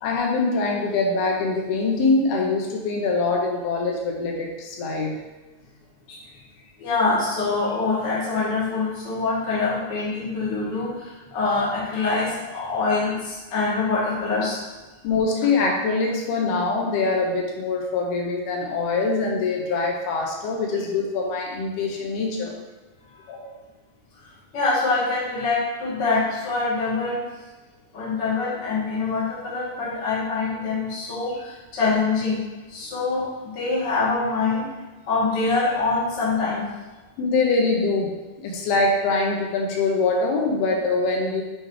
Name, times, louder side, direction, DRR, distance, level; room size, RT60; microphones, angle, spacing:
voice 1, 0.0-5.2 15.0-22.5 23.3-23.5 37.2-38.1 38.4-41.4, left 3 dB, 85° left, 0 dB, 2.8 m, -23 dB
voice 2, 6.8-14.6 23.1-23.3 24.5-27.2 27.9-32.4 32.7-33.3 33.5-34.7 35.1-36.7, left 3 dB, 40° left, -7 dB, 1.9 m, -24 dB
7.6 x 3.4 x 4.8 m, 1.2 s
omnidirectional pair, 4.4 m